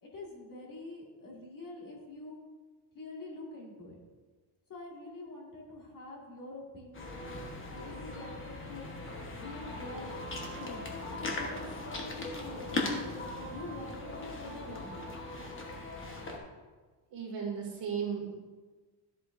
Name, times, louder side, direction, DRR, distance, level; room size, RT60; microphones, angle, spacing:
voice 1, 0.0-2.4 2.9-4.0 4.7-7.4 7.7-8.9 9.4-10.2 10.6-12.9 13.4-15.1, left 2 dB, 40° left, -3 dB, 2.2 m, -46 dB
sound 1, 6.9-16.4, left 2 dB, 25° left, 1.2 m, -39 dB
voice 2, 17.1-18.3, right 7 dB, 55° right, -3 dB, 2.8 m, -35 dB
13.0 x 8.1 x 2.6 m, 1.3 s
cardioid pair, 165°, 50 cm